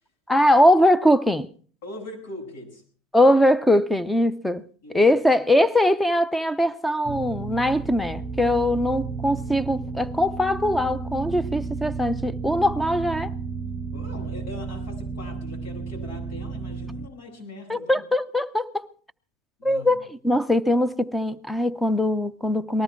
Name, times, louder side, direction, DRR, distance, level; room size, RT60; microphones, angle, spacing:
voice 1, 0.3-1.5 3.1-4.6 4.9-13.3 17.7-18.9 19.6-22.8, left 1 dB, 5° left, 0.7 m, -21 dB
voice 2, 1.8-2.8 4.8-5.0 13.9-17.9 19.6-20.0, left 2 dB, 75° left, 7.8 m, -40 dB
sound 1, 7.0-17.1, right 4 dB, 20° right, 0.9 m, -33 dB
19.5 x 13.5 x 4.6 m
supercardioid pair, 130°, 0 cm